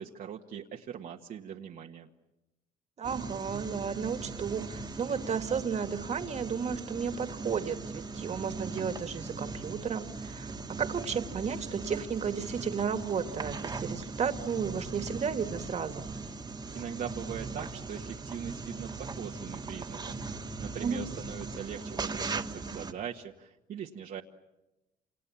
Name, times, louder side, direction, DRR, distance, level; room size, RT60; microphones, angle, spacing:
voice 1, 0.0-2.1 16.7-24.2, right 8 dB, 55° right, 0 dB, 1.6 m, -41 dB
sound 1, 3.0-22.9, right 3 dB, 25° right, 1.9 m, -39 dB
voice 2, 3.0-16.0 20.8-21.0, right 6 dB, 40° right, 7 dB, 2.1 m, -33 dB
28.5 x 28.0 x 7.3 m, 0.97 s
cardioid pair, 110°, 17 cm